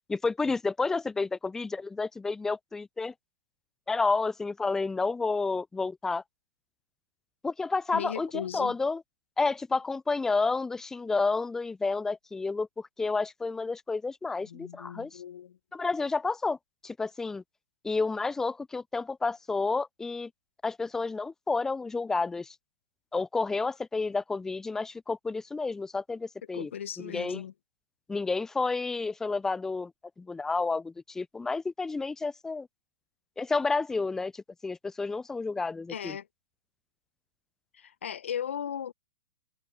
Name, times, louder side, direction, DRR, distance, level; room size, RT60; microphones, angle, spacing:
voice 1, 0.1-3.1 3.9-6.2 7.4-9.0 9.4-15.2 15.7-16.6 16.8-17.4 17.8-20.3 20.6-22.6 23.1-26.7 27.0-27.4 28.1-29.9 30.2-32.7 33.4-36.2, left 3 dB, 5° left, 0.3 m, -30 dB
voice 2, 7.9-8.8 14.4-15.6 26.5-27.5 35.9-36.3 37.7-38.9, left 9 dB, 75° left, 0.8 m, -37 dB
hypercardioid pair, 120°, 7 cm